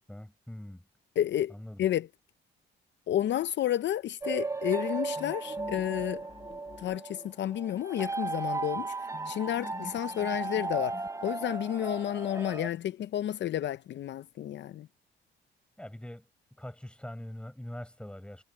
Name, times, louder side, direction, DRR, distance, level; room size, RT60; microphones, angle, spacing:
voice 1, 0.1-0.8 1.5-1.8 15.8-16.2 16.6-18.4, left 1 dB, 5° left, 7.0 m, -43 dB
voice 2, 1.2-2.1 3.1-6.2 6.8-14.9, left 11 dB, 65° left, 0.6 m, -31 dB
sound 1, 4.2-12.7, right 3 dB, 15° right, 0.8 m, -36 dB
sound 2, 5.2-7.7 9.1-11.6, left 5 dB, 25° left, 1.1 m, -47 dB
cardioid pair, 90°, 20 cm